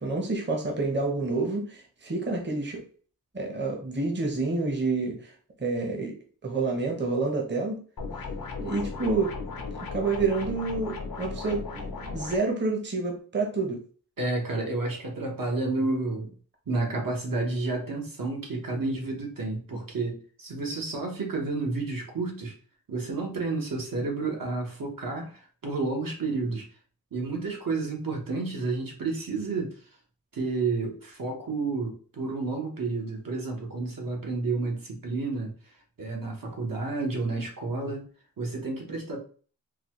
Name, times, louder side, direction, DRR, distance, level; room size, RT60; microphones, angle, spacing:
voice 1, 0.0-2.8 3.3-5.3 5.6-6.1 6.4-7.8 8.6-13.8, right 3 dB, 30° right, 1 dB, 0.8 m, -28 dB
sound 1, 8.0-12.4, left 4 dB, 75° left, 0.7 m, -36 dB
voice 2, 14.2-16.3 16.7-22.5 22.9-26.7 27.1-29.7 30.3-35.5 36.0-38.0 38.4-39.2, right 3 dB, 70° right, 0 dB, 1.1 m, -30 dB
3.9 x 2.3 x 3.0 m, 0.41 s
wide cardioid pair, 80°, 35 cm